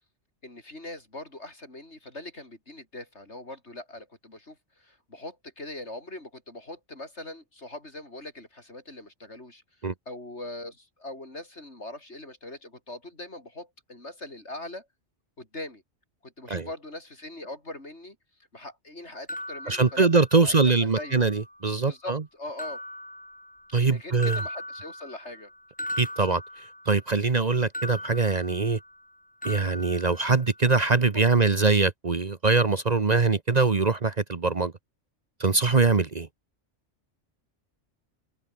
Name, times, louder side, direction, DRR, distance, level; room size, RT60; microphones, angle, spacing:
voice 1, 0.4-9.6 10.1-14.9 15.4-15.8 16.2-18.2 18.5-20.1 20.3-21.2 21.9-22.8 23.8-25.5 31.1-31.4, left 2 dB, 70° left, 6.4 m, -41 dB
sound 1, 19.3-20.6 21.0-21.7 22.6-23.9 24.2-27.1 27.7-29.1 29.4-30.8, equal, 5° left, 2.3 m, -39 dB
voice 2, 19.7-22.2 23.7-24.4 26.0-26.4 26.9-28.8 29.4-34.7 35.4-36.3, right 4 dB, 35° right, 1.1 m, -23 dB
omnidirectional pair, 1.2 m